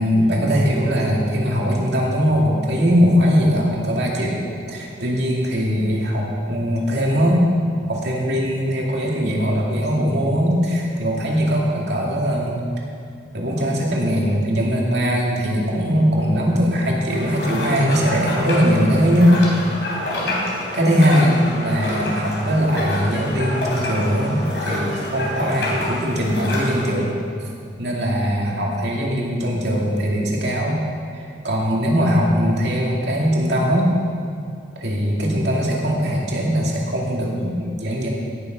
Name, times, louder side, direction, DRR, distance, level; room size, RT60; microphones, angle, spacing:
voice 1, 0.0-4.4 4.7-7.4 7.8-12.6 13.3-19.4 20.2-20.4 20.7-27.1 27.8-30.8 31.1-33.9 34.8-38.1, equal, 75° right, -2 dB, 2.4 m, -20 dB
sound 1, 17.1-27.0, left 1 dB, 90° left, 3.4 m, -28 dB
17.0 x 7.1 x 5.2 m, 2.5 s
head